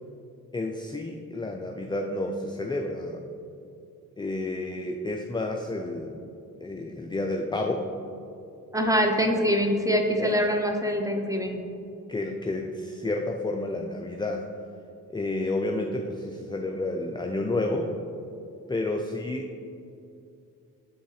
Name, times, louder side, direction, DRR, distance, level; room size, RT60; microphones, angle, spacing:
voice 1, 0.5-3.2 4.2-6.2 6.6-7.9 10.2-10.3 12.1-14.5 15.1-18.0 18.7-19.5, left 2 dB, 10° left, 2 dB, 0.5 m, -30 dB
voice 2, 8.7-11.6, equal, 10° right, 3 dB, 0.9 m, -24 dB
7.0 x 5.3 x 3.3 m, 2.6 s
hypercardioid pair, 40°, 38 cm